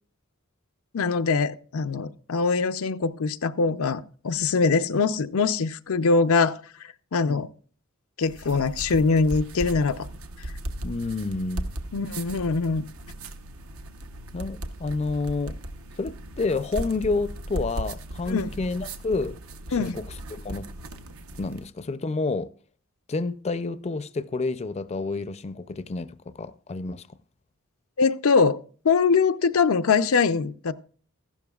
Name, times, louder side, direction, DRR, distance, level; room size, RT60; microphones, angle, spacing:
voice 1, 0.9-7.5 8.2-10.1 11.9-12.9 18.3-18.5 19.7-20.0 28.0-30.7, left 4 dB, 90° left, 0.6 m, -23 dB
sound 1, 8.2-21.7, right 1 dB, 85° right, 0.9 m, -37 dB
voice 2, 10.8-11.7 14.3-15.6 16.0-19.4 19.7-20.0 20.3-20.7 21.4-22.5 23.1-27.0, left 3 dB, 30° left, 0.4 m, -29 dB
14.5 x 12.0 x 2.3 m
head